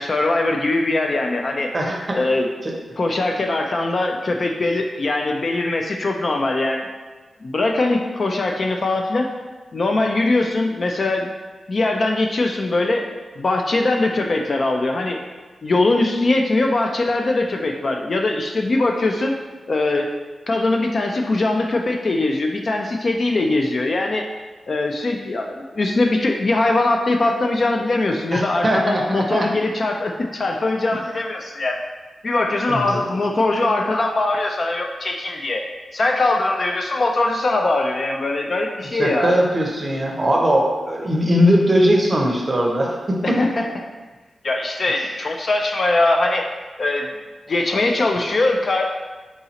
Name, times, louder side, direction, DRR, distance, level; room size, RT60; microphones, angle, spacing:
voice 1, 0.0-1.7 2.1-2.5 3.0-6.9 7.4-9.3 9.7-11.3 11.7-13.1 13.4-15.2 15.6-19.3 19.7-20.1 20.5-24.2 24.7-31.8 32.2-35.6 35.9-39.4 43.2-43.7 44.4-46.5 46.8-47.1 47.5-48.9, left 2 dB, 40° left, 3 dB, 0.3 m, -21 dB
voice 2, 1.7-2.2 2.6-2.7 28.3-29.5 32.7-33.0 38.9-43.4 44.9-45.1, equal, 25° right, 0 dB, 0.6 m, -20 dB
4.7 x 4.0 x 2.8 m, 1.3 s
wide cardioid pair, 175°, 0 cm